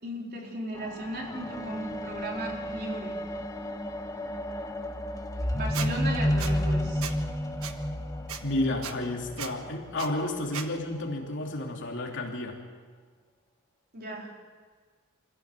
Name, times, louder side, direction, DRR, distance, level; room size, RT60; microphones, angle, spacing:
voice 1, 0.0-3.2 5.5-7.0 13.9-14.3, right 1 dB, 45° right, -1 dB, 4.0 m, -36 dB
sound 1, 0.7-10.3 11.1-11.2, equal, 15° left, 1.4 m, -32 dB
Squeak, 5.7-5.9 6.4-6.5 7.0-7.2 7.6-7.7 8.3-8.4 8.8-8.9 9.4-9.5 10.0-10.1 10.5-10.7, right 8 dB, 80° right, 1.4 m, -36 dB
voice 2, 8.4-12.6, left 1 dB, 60° left, 1 dB, 3.1 m, -31 dB
25.5 x 15.5 x 7.6 m, 1.6 s
head